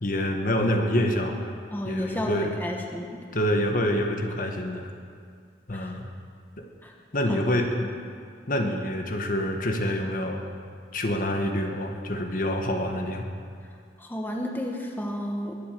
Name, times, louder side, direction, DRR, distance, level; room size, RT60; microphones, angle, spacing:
voice 1, 0.0-1.5 1.8-2.6 3.3-4.9 5.7-6.1 6.6-6.7 7.1-7.9 8.5-10.4 10.9-13.3, left 1 dB, 50° left, 3 dB, 1.4 m, -26 dB
voice 2, 1.7-3.1 5.7-5.9 6.8-6.9 7.3-7.6 14.0-15.6, equal, 10° left, 0 dB, 1.3 m, -32 dB
22.0 x 8.3 x 7.6 m, 2.2 s
head